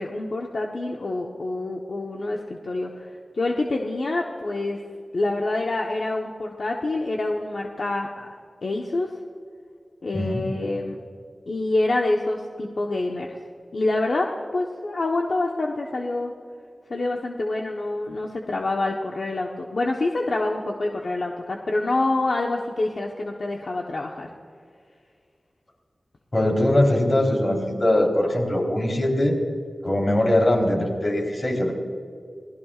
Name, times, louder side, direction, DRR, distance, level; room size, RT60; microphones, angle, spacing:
voice 1, 0.0-4.8 5.1-8.3 8.6-9.1 10.0-11.0 11.5-13.3 13.7-16.3 16.9-24.3, left 2 dB, 70° left, 0 dB, 1.1 m, -26 dB
voice 2, 26.3-29.3 29.8-31.7, left 1 dB, 45° left, -1 dB, 3.9 m, -21 dB
27.0 x 19.0 x 2.5 m, 2.2 s
wide cardioid pair, 85°, 0 cm